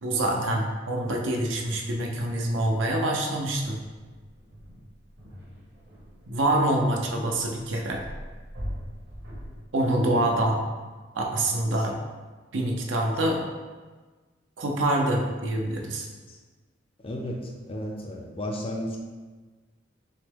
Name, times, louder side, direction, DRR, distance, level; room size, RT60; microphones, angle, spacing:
voice 1, 0.0-3.8 6.3-8.0 9.7-10.6 11.2-11.9 12.5-13.5 14.6-16.1, right 1 dB, 75° right, 0 dB, 0.7 m, -26 dB
sound 1, 3.5-9.6, equal, 60° right, 1.1 m, -42 dB
voice 2, 7.1-7.4 10.0-10.3 16.3-16.4 17.0-19.0, equal, 30° left, 0 dB, 0.5 m, -34 dB
6.1 x 2.1 x 3.5 m, 1.3 s
head